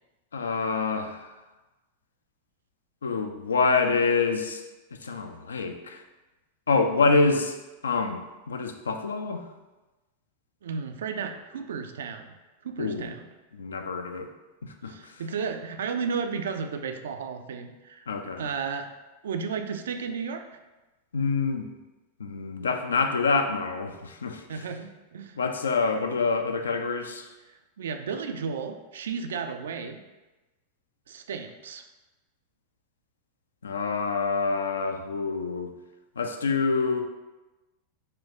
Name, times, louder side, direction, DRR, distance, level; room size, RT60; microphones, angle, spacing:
voice 1, 0.3-1.3 3.0-4.6 5.0-6.0 6.7-7.6 7.8-8.2 8.5-9.4 12.8-13.1 13.5-14.3 14.6-15.2 18.1-18.5 21.1-21.7 22.2-24.4 25.4-27.3 33.6-35.7 36.2-37.0, left 4 dB, 70° left, 6 dB, 0.3 m, -26 dB
voice 2, 10.6-12.3 12.6-13.3 14.8-18.0 18.4-18.9 19.2-20.5 24.5-25.4 27.5-30.0 31.1-31.8, right 5 dB, 60° right, 7 dB, 0.3 m, -33 dB
4.3 x 2.3 x 3.6 m, 1.1 s
figure-of-eight pair, 90°, 0 cm